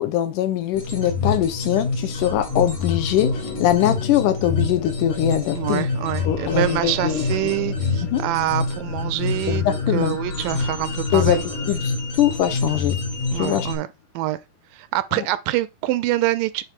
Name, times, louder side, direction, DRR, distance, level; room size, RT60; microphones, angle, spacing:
voice 1, 0.0-5.9 6.3-7.5 8.1-8.2 9.5-10.2 11.1-13.0 13.3-13.7 15.1-15.2, left 11 dB, 75° left, 2.1 m, -22 dB
sound 1, 0.7-13.8, left 3 dB, 60° left, 3.4 m, -27 dB
sound 2, 3.1-13.4 14.0-14.1, left 10 dB, 90° left, 1.1 m, -39 dB
voice 2, 5.5-9.6 9.9-11.4 13.3-13.9 14.2-14.4 14.7-16.6, right 15 dB, 80° right, 2.1 m, -25 dB
8.1 x 3.2 x 5.8 m
omnidirectional pair, 4.0 m